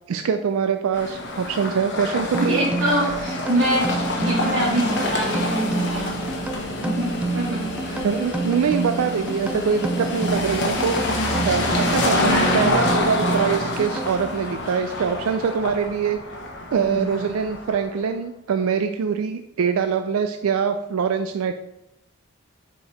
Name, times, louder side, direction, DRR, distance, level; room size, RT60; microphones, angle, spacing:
voice 1, 0.1-2.6 8.0-11.0 11.4-16.2 16.7-21.5, right 6 dB, 85° right, 7 dB, 0.4 m, -23 dB
sound 1, 0.9-17.9, left 1 dB, 55° left, 1.1 m, -27 dB
sound 2, 2.3-14.5, right 3 dB, 5° right, 0.3 m, -29 dB
voice 2, 2.4-3.9 4.2-6.4 6.8-8.1 12.1-12.9 16.8-17.2, right 1 dB, 60° right, -6 dB, 1.3 m, -25 dB
4.9 x 4.7 x 4.1 m, 0.88 s
head